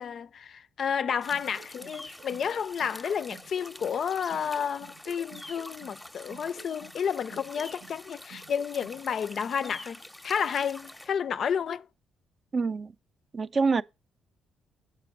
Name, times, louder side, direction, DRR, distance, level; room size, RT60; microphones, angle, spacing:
voice 1, 0.0-11.9 13.7-13.8, left 7 dB, 55° left, 0.4 m, -31 dB
sound 1, 1.1-4.0 4.3-8.0 8.3-9.0, right 8 dB, 75° right, 0.9 m, -52 dB
sound 2, 1.2-11.1, left 1 dB, 5° left, 0.6 m, -46 dB
voice 2, 12.5-12.9 13.3-13.8, right 4 dB, 40° right, 0.4 m, -26 dB
7.5 x 4.2 x 5.9 m
cardioid pair, 90°, 0 cm